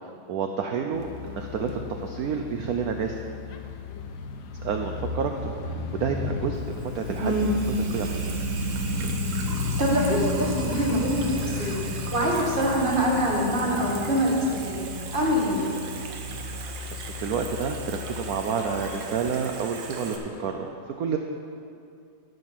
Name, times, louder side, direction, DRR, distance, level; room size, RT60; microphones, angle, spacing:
voice 1, 0.0-3.1 4.6-7.3 7.9-8.2 15.5-15.6 16.5-20.7 21.0-21.2, right 6 dB, 90° right, 4 dB, 0.8 m, -30 dB
sound 1, 0.9-20.5, left 3 dB, 85° left, 1.6 m, -33 dB
Water tap faucet / Sink (filling or washing), 6.5-20.2, right 5 dB, 70° right, 1.6 m, -39 dB
voice 2, 9.8-14.8 15.1-15.7, equal, 30° right, -3 dB, 1.5 m, -25 dB
13.0 x 5.4 x 5.9 m, 2.5 s
omnidirectional pair, 2.2 m